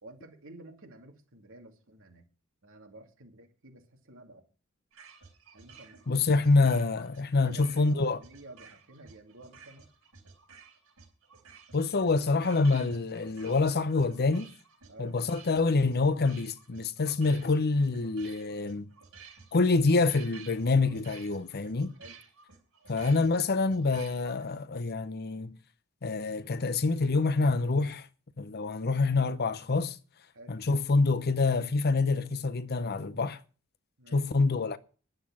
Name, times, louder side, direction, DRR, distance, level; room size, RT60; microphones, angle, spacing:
voice 1, 0.0-2.3 2.6-4.5 5.5-6.3 7.4-9.8 14.9-15.2 22.0-22.2 30.3-30.6 34.0-34.2, right 1 dB, 65° right, 2.6 m, -51 dB
sound 1, 4.9-24.4, right 6 dB, 80° right, 4.3 m, -54 dB
voice 2, 6.1-8.2 11.7-14.5 15.0-18.9 19.5-21.9 22.9-25.6 26.0-28.1 28.4-30.0 30.5-33.4 34.1-34.8, left 3 dB, 45° left, 0.7 m, -26 dB
10.5 x 7.8 x 7.2 m
head